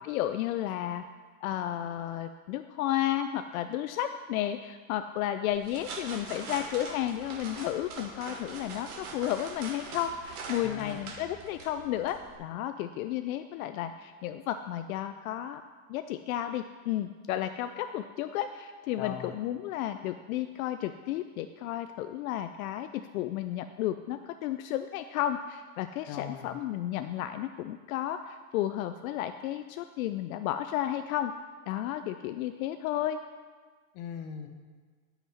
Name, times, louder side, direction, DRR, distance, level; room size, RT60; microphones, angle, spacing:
voice 1, 0.0-1.0 1.4-15.6 15.9-31.3 31.7-33.2, left 12 dB, 75° left, 9 dB, 0.5 m, -33 dB
sound 1, 5.5-12.4, right 4 dB, 80° right, 1.8 m, -43 dB
voice 2, 10.6-11.0 19.0-19.3 26.1-26.6 33.9-34.5, left 8 dB, 45° left, 6 dB, 0.9 m, -39 dB
10.5 x 5.9 x 4.2 m, 1.5 s
supercardioid pair, 150°, 43 cm